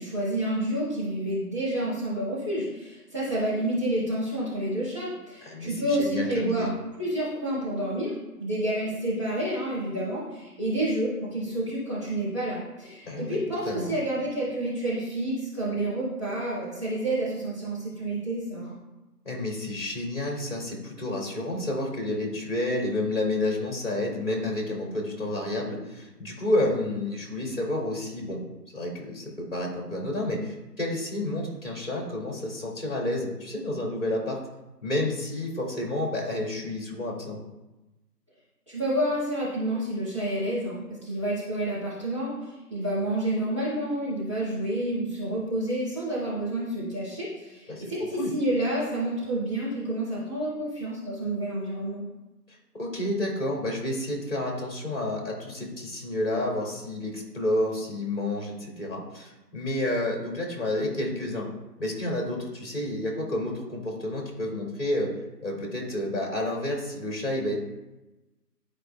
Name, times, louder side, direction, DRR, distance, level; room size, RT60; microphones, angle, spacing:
voice 1, 0.0-6.7 7.0-18.8 38.7-52.0, right 1 dB, 15° right, -13 dB, 1.8 m, -29 dB
voice 2, 5.5-6.7 13.1-13.9 19.3-28.4 28.7-34.4 34.8-37.4 47.7-47.9 48.2-48.3 52.5-61.5 61.8-65.1 65.4-67.6, left 1 dB, 35° left, -2 dB, 2.3 m, -30 dB
12.0 x 5.0 x 2.2 m, 1.0 s
figure-of-eight pair, 165°, 50 cm